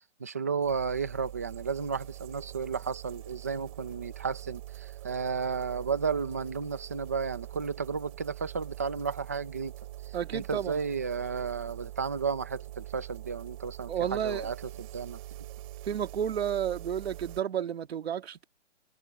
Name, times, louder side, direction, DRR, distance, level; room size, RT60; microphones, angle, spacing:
voice 1, 0.2-9.7 10.3-15.2, right 5 dB, 15° right, 0.5 m, -33 dB
sound 1, 0.6-17.4, right 15 dB, 30° right, 2.7 m, -44 dB
voice 2, 10.1-10.8 13.9-14.5 15.8-18.4, right 9 dB, 60° right, 1.8 m, -31 dB
hypercardioid pair, 175°, 36 cm